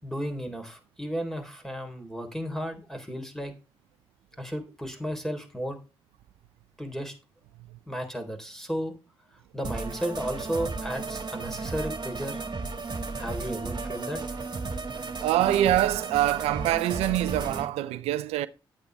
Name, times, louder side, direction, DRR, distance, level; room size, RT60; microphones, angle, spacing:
voice 1, 0.0-3.5 4.4-5.8 6.8-7.1 7.9-8.9 9.5-12.4 13.2-14.2, equal, 5° left, 3.7 m, -34 dB
sound 1, 9.6-17.7, right 3 dB, 45° right, 2.0 m, -34 dB
voice 2, 15.2-18.5, right 13 dB, 90° right, 0.4 m, -25 dB
10.0 x 8.3 x 3.4 m
supercardioid pair, 40°, 10 cm